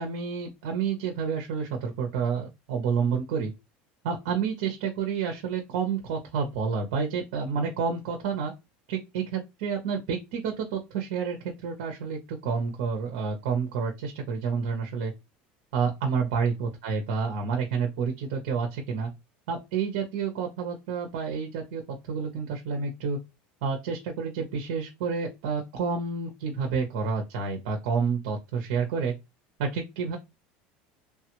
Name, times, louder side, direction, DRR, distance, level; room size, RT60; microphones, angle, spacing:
voice 1, 0.0-3.5 4.0-8.5 8.9-11.4 11.6-15.1 15.7-19.1 19.5-21.8 22.1-23.2 23.6-29.1 29.6-30.2, right 5 dB, 75° right, 0.8 m, -29 dB
3.2 x 2.3 x 2.9 m
cardioid pair, 180°, 4 cm